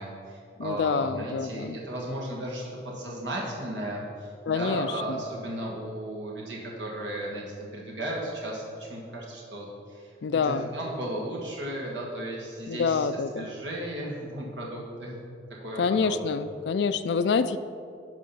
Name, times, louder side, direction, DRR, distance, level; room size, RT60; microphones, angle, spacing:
voice 1, 0.0-7.4 7.7-13.1 13.3-15.2 15.6-16.4, right 1 dB, 90° right, -3 dB, 1.4 m, -35 dB
voice 2, 0.6-1.8 4.5-5.2 10.2-10.7 12.7-13.5 15.8-17.6, left 5 dB, 75° left, 11 dB, 0.4 m, -27 dB
11.0 x 3.7 x 5.6 m, 2.4 s
head